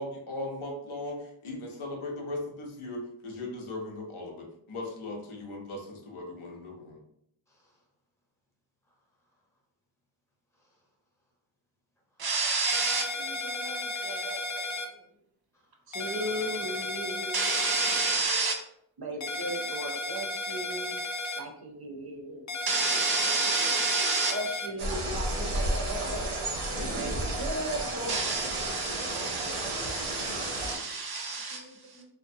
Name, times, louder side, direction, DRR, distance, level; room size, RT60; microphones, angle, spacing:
voice 1, 0.0-7.0, left 2 dB, 80° left, 1 dB, 0.7 m, -38 dB
voice 2, 7.5-7.8 8.9-9.0 9.3-9.4 10.5-10.9 12.1-12.3 15.5-15.8 30.1-30.6 31.9-32.0, equal, 5° left, -4 dB, 0.8 m, -60 dB
voice 3, 12.2-14.7 15.9-18.6 19.0-21.0 21.4-26.5 26.7-32.0, right 3 dB, 50° right, 1 dB, 0.6 m, -32 dB
sound 1, 12.7-14.9 15.9-18.1 19.2-21.4 22.5-24.7, left 2 dB, 40° left, 0.4 m, -34 dB
sound 2, 24.8-30.8, right 1 dB, 90° right, 0.7 m, -32 dB
2.5 x 2.2 x 2.6 m, 0.72 s
wide cardioid pair, 95°, 49 cm